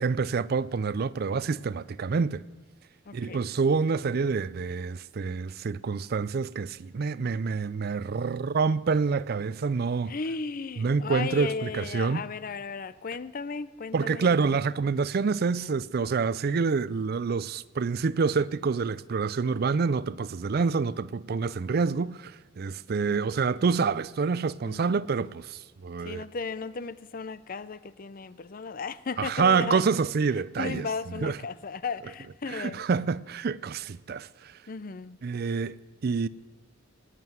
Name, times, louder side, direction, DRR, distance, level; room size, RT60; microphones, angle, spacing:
voice 1, 0.0-2.4 3.1-10.1 10.8-12.2 13.9-26.2 29.2-30.9 31.2-31.3 32.5-34.5 35.2-35.8 36.0-36.3, right 5 dB, 50° right, 0.4 m, -27 dB
voice 2, 3.1-3.4 10.1-14.4 15.4-15.7 23.0-23.7 24.6-24.8 26.0-29.8 30.6-32.9 34.7-35.2, left 4 dB, 45° left, 0.5 m, -35 dB
19.5 x 9.2 x 7.9 m
head